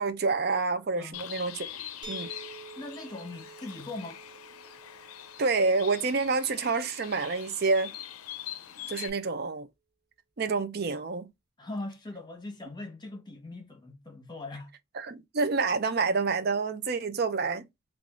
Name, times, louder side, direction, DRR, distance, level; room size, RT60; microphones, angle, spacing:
voice 1, 0.0-1.6 2.1-2.3 5.4-7.9 8.9-9.7 10.4-11.3 15.0-17.7, right 4 dB, 45° right, 0.5 m, -28 dB
Bird, 1.1-9.1, left 11 dB, 85° left, 0.5 m, -43 dB
sound 1, 2.0-7.8, right 3 dB, 20° right, 0.7 m, -50 dB
voice 2, 2.8-4.2 11.6-14.7, left 2 dB, 20° left, 1.0 m, -40 dB
3.5 x 2.4 x 3.6 m
head